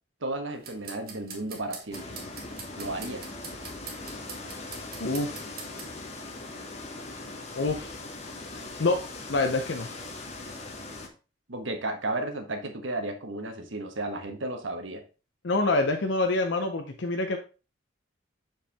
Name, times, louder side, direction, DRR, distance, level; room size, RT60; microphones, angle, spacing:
voice 1, 0.2-2.1 2.8-3.2 11.5-15.0, right 2 dB, 85° right, 5 dB, 1.3 m, -33 dB
sound 1, 0.5-6.0, right 5 dB, 50° right, 1.5 m, -44 dB
sound 2, 1.9-11.1, left 2 dB, 35° left, 1.0 m, -40 dB
voice 2, 5.0-5.3 7.5-7.9 8.8-9.0 9.3-9.9 15.4-17.4, left 2 dB, 70° left, 4 dB, 0.7 m, -26 dB
7.2 x 4.7 x 3.4 m, 0.33 s
head